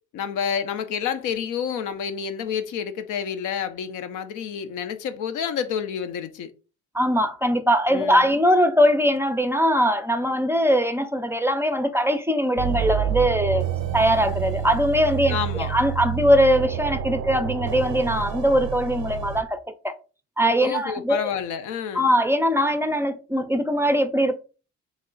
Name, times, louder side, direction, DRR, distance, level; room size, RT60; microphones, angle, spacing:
voice 1, 0.1-6.5 7.9-8.3 15.3-15.7 20.6-22.1, left 7 dB, 85° left, 0.6 m, -29 dB
voice 2, 6.9-19.9 20.4-21.3 21.9-24.3, equal, 10° right, 0.3 m, -21 dB
The Terror, 12.6-19.4, right 10 dB, 90° right, 0.5 m, -28 dB
3.2 x 2.4 x 3.7 m
cardioid pair, 90°, 30 cm